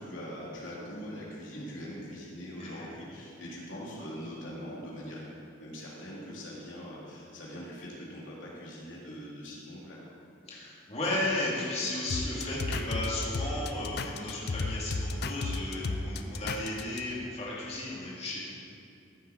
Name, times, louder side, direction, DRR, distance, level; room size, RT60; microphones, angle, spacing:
voice 1, 0.0-5.2 5.5-10.0 16.2-16.5, equal, 80° left, -6 dB, 3.0 m, -42 dB
voice 2, 10.5-18.4, left 2 dB, 35° left, -6 dB, 2.3 m, -34 dB
sound 1, 12.1-17.0, left 3 dB, 55° left, 0.5 m, -33 dB
14.5 x 7.3 x 4.5 m, 2.5 s
head